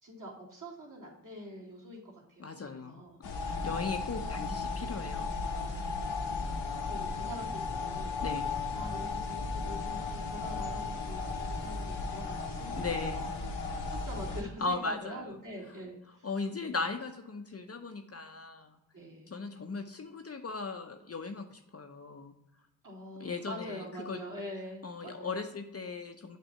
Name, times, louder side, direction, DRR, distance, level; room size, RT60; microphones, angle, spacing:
voice 1, 0.0-3.2 3.8-3.9 4.9-5.1 5.7-6.0 6.9-8.3 8.7-13.3 13.7-16.3 18.9-19.3 22.8-25.4, equal, 45° right, -3 dB, 2.4 m, -45 dB
voice 2, 2.4-5.3 8.2-8.5 12.8-13.3 14.6-15.3 16.2-18.8 19.3-22.3 23.2-24.2 24.8-26.4, left 4 dB, 35° left, 5 dB, 0.7 m, -38 dB
sound 1, 3.2-14.4, left 4 dB, 90° left, 1.1 m, -35 dB
7.2 x 2.7 x 5.3 m, 0.89 s
supercardioid pair, 40°, 44 cm